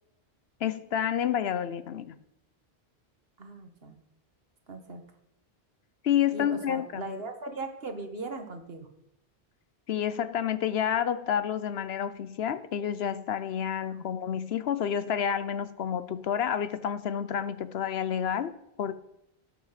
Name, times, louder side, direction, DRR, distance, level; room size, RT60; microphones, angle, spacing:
voice 1, 0.6-2.2 6.0-7.1 9.9-18.9, left 9 dB, 70° left, 0.9 m, -29 dB
voice 2, 3.4-4.0 4.7-5.0 6.3-8.9 13.9-14.0, right 2 dB, 65° right, 1.7 m, -39 dB
17.5 x 5.9 x 5.8 m
omnidirectional pair, 1.1 m